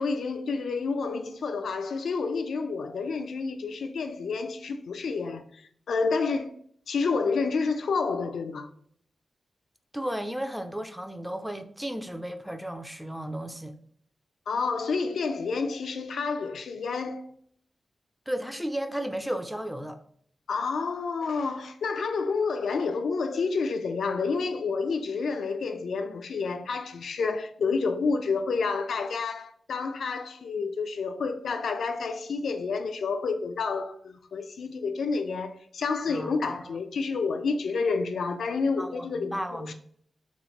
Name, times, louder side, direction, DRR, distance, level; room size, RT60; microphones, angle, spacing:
voice 1, 0.0-5.6 5.9-6.5 6.9-8.7 14.5-17.3 20.5-39.7, left 4 dB, 90° left, 0.3 m, -29 dB
voice 2, 9.9-13.8 18.3-20.0 36.1-36.8 38.8-39.7, equal, ahead, 0.3 m, -34 dB
3.0 x 2.0 x 2.8 m
wide cardioid pair, 90°, 0 cm